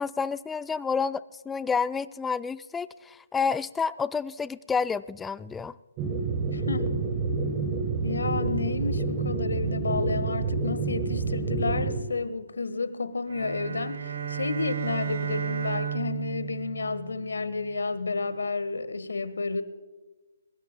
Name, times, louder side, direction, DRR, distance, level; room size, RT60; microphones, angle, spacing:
voice 1, 0.0-5.7, left 5 dB, 10° left, 17 dB, 0.4 m, -29 dB
sound 1, 6.0-12.0, right 4 dB, 20° right, 1.2 m, -28 dB
voice 2, 6.5-6.9 8.0-19.6, left 4 dB, 70° left, 13 dB, 1.3 m, -31 dB
sound 2, 13.3-17.7, right 8 dB, 55° right, 1.6 m, -33 dB
22.5 x 21.5 x 2.2 m, 1.2 s
figure-of-eight pair, 140°, 0 cm